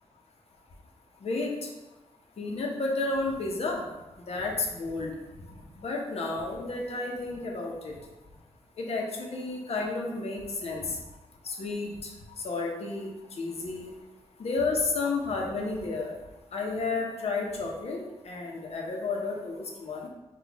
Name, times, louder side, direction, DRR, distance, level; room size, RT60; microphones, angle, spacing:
voice 1, 1.2-1.5 2.4-3.8 4.3-5.1 5.8-7.9 8.8-11.0 11.4-12.1 12.4-13.9 14.4-16.1 16.5-20.1, left 3 dB, 65° left, -1 dB, 0.9 m, -31 dB
5.9 x 2.5 x 3.5 m, 1.1 s
wide cardioid pair, 145°, 11 cm